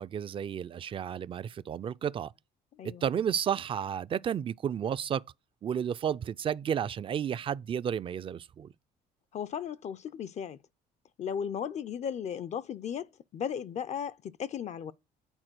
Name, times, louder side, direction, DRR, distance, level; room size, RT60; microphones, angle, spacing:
voice 1, 0.0-2.3 2.8-5.2 5.6-8.7, right 8 dB, 30° right, 0.4 m, -32 dB
voice 2, 2.7-3.0 9.3-10.6 11.2-14.9, left 8 dB, 45° left, 0.4 m, -36 dB
8.9 x 4.3 x 6.0 m
cardioid pair, 110°, 17 cm